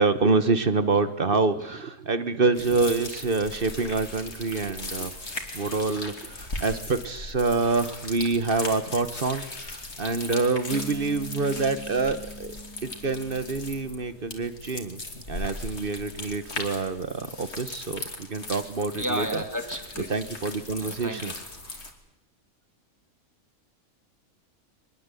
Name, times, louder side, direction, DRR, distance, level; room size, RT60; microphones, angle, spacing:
voice 1, 0.0-5.1 5.5-12.5 12.8-15.0 15.3-19.4 20.1-21.3, right 3 dB, 40° right, 12 dB, 1.3 m, -26 dB
sound 1, 2.5-21.9, left 2 dB, 50° left, 3.1 m, -38 dB
Bass guitar, 10.7-14.4, equal, 15° left, 1.2 m, -43 dB
voice 2, 18.9-20.1 20.8-22.0, equal, 10° right, 5 dB, 2.6 m, -34 dB
23.0 x 21.0 x 8.3 m, 0.92 s
omnidirectional pair, 1.5 m